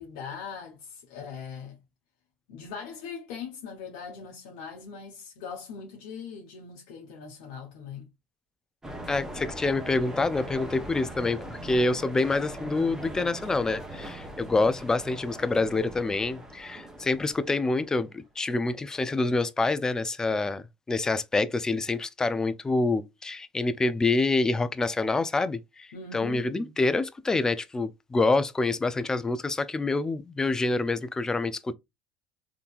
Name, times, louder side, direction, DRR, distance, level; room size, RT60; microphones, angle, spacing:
voice 1, 0.0-1.8 2.5-8.1 25.9-26.7, left 6 dB, 80° left, 0.8 m, -41 dB
sound 1, 8.8-18.0, right 1 dB, 15° right, 0.9 m, -40 dB
voice 2, 9.1-31.7, left 3 dB, 15° left, 0.4 m, -27 dB
3.6 x 2.8 x 2.4 m
supercardioid pair, 90°, 4 cm